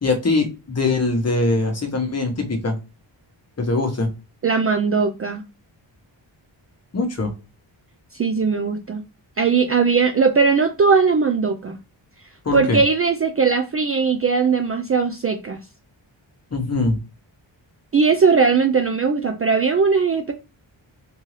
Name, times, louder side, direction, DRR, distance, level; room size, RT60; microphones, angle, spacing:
voice 1, 0.0-2.8 3.6-4.1 6.9-7.3 12.4-12.8 16.5-17.0, left 3 dB, 35° left, 3 dB, 1.1 m, -22 dB
voice 2, 4.4-5.4 8.1-9.0 9.4-11.8 12.5-15.6 17.9-20.3, right 5 dB, 35° right, 6 dB, 0.4 m, -19 dB
3.8 x 2.7 x 3.1 m, 0.30 s
wide cardioid pair, 130°, 46 cm